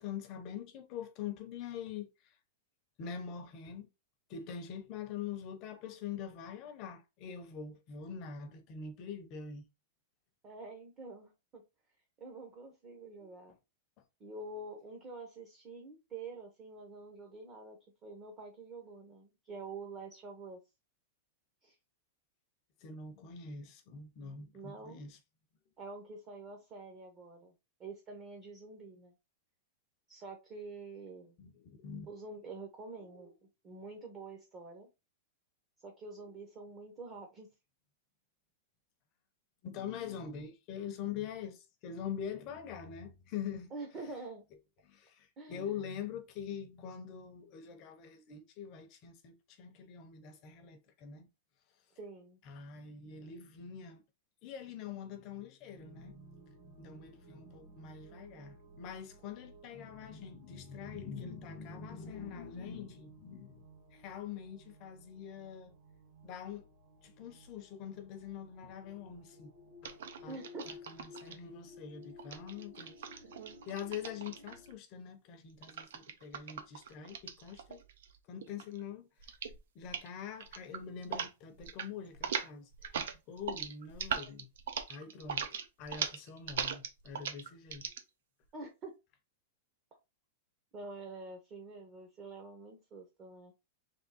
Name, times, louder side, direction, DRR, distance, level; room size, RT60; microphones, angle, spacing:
voice 1, 0.0-2.3 3.0-3.9 4.3-9.6 22.8-25.2 31.4-32.1 39.6-43.7 44.8-51.3 52.4-54.0 54.4-63.6 63.9-65.7 66.2-66.7 67.0-69.5 69.8-70.4 70.7-73.0 73.7-77.8 78.3-79.3 79.7-84.5 84.9-87.9, left 7 dB, 30° left, 0.7 m, -44 dB
voice 2, 10.4-11.6 12.2-13.6 14.2-20.6 21.6-21.8 24.5-25.0 25.8-27.5 27.8-29.1 30.1-31.4 32.1-34.9 35.8-37.5 43.7-44.4 45.4-45.7 52.0-52.4 70.3-70.8 88.5-89.0 90.7-93.5, right 3 dB, 20° right, 0.8 m, -47 dB
sound 1, 55.8-74.7, left 1 dB, 45° right, 2.1 m, -57 dB
sound 2, 69.8-71.3 72.2-74.7 75.6-78.2 78.4-78.8 79.2-79.6 79.8-80.1 80.4-81.3 81.6-81.9 82.1-88.0, right 7 dB, 75° right, 0.8 m, -40 dB
3.5 x 3.3 x 4.0 m
supercardioid pair, 175°, 0 cm